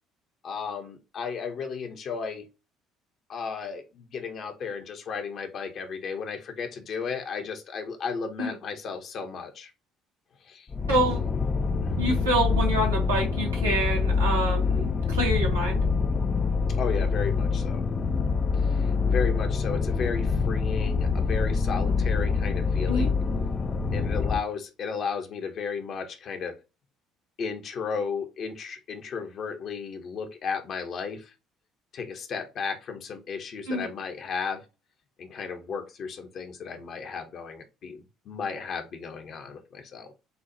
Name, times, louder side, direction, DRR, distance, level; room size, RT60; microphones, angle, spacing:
voice 1, 0.4-2.5 3.3-9.7 10.4-10.7 16.8-17.8 18.5-23.2 23.9-26.6 27.4-31.3 31.9-34.6 35.2-40.1, left 5 dB, 50° left, 1.0 m, -34 dB
sound 1, 10.7-24.4, left 4 dB, 35° left, 0.5 m, -25 dB
voice 2, 10.9-11.2 12.0-15.8 22.9-23.1 33.7-33.9, right 1 dB, 85° right, 1.6 m, -27 dB
6.8 x 2.5 x 2.8 m
figure-of-eight pair, 55°, 0 cm